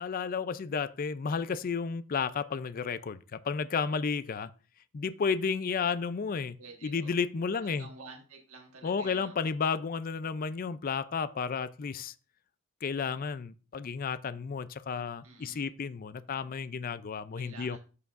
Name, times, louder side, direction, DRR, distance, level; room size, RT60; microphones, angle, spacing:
voice 1, 0.0-4.5 4.9-6.6 6.8-7.9 8.8-12.1 12.8-17.8, left 5 dB, 40° left, 0.4 m, -32 dB
voice 2, 6.6-7.1 7.6-9.3 15.2-15.6 17.3-17.8, right 4 dB, 80° right, 1.5 m, -50 dB
13.5 x 4.8 x 2.5 m
head